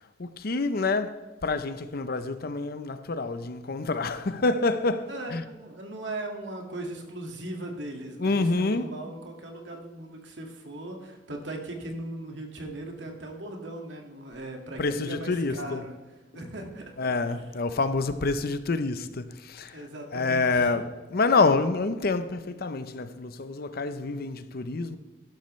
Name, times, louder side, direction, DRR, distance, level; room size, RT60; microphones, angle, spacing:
voice 1, 0.2-5.4 8.2-8.9 14.8-15.8 17.0-19.8 20.1-25.0, left 3 dB, 55° left, 0.7 m, -27 dB
voice 2, 5.1-16.0 16.3-17.5 19.7-20.8, right 1 dB, 75° right, 2.0 m, -39 dB
12.5 x 11.5 x 3.2 m
head